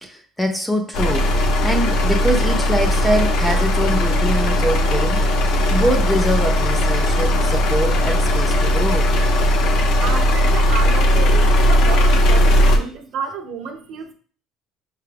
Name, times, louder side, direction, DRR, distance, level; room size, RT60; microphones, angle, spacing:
voice 1, 0.0-5.2 5.7-9.1, equal, 5° left, 0.4 m, -23 dB
sound 1, 0.9-12.8, equal, 55° left, 0.6 m, -17 dB
voice 2, 10.0-14.1, right 6 dB, 55° right, 0.7 m, -31 dB
6.5 x 2.3 x 3.3 m
cardioid pair, 170°, 0 cm